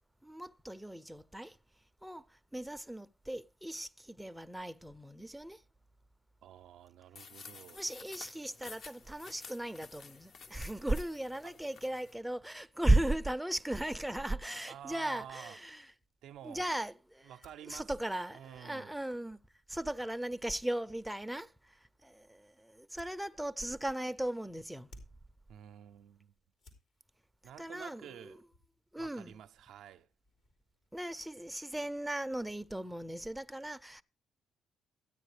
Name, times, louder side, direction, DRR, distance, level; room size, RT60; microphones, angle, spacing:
voice 1, 0.2-1.6 2.0-5.6 7.7-15.9 16.4-17.3 17.7-19.4 19.7-24.9 27.6-28.4 28.9-29.4 30.9-34.0, right 1 dB, 5° right, 0.5 m, -36 dB
voice 2, 6.4-7.8 11.4-11.5 14.7-15.6 16.2-16.7 17.2-17.9 18.3-19.0 25.5-26.4 27.4-28.4 29.0-30.1, right 10 dB, 80° right, 0.5 m, -50 dB
sound 1, 7.1-12.1, left 5 dB, 55° left, 0.8 m, -52 dB
sound 2, 17.3-30.9, left 2 dB, 80° left, 3.0 m, -69 dB
13.5 x 9.1 x 3.3 m
cardioid pair, 90°, 0 cm